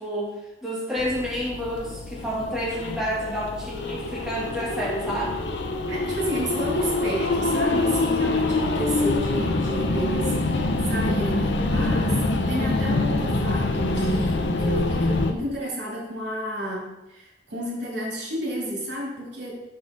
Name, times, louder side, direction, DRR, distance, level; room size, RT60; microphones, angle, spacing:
voice 1, 0.0-5.4, equal, 5° right, -7 dB, 2.3 m, -29 dB
sound 1, 1.0-15.3, left 2 dB, 85° left, 0.7 m, -25 dB
voice 2, 5.9-12.2 12.5-19.6, equal, 80° right, -3 dB, 2.6 m, -31 dB
7.5 x 6.4 x 3.7 m, 0.92 s
head